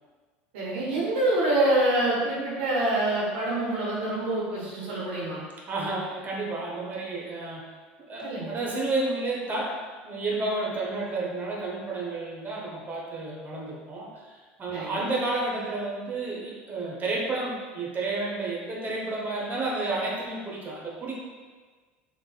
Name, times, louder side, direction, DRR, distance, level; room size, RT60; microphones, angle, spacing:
voice 1, 0.5-5.4 8.2-8.5 14.7-15.1, right 1 dB, 75° right, -5 dB, 1.1 m, -26 dB
voice 2, 5.7-7.6 8.0-9.8 10.0-14.3 14.6-21.1, right 2 dB, 30° right, -3 dB, 1.0 m, -31 dB
3.9 x 3.1 x 2.3 m, 1.4 s
hypercardioid pair, 85°, 6 cm